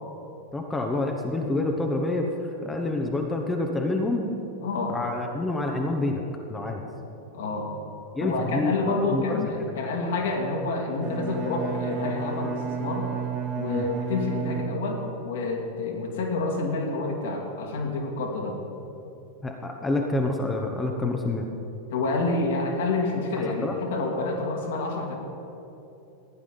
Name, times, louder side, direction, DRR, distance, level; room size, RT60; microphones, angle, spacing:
voice 1, 0.5-4.3 4.9-6.2 6.5-6.8 8.1-9.4 13.7-13.9 19.4-21.5 23.6-23.7, left 2 dB, 10° left, 2 dB, 1.1 m, -27 dB
voice 2, 4.6-5.0 7.3-7.8 8.2-13.1 13.5-18.6 21.9-25.2, left 3 dB, 55° left, 1 dB, 2.2 m, -28 dB
Bowed string instrument, 10.9-15.2, right 6 dB, 30° right, 1.2 m, -32 dB
15.0 x 10.0 x 5.3 m, 3.0 s
figure-of-eight pair, 90°, 0 cm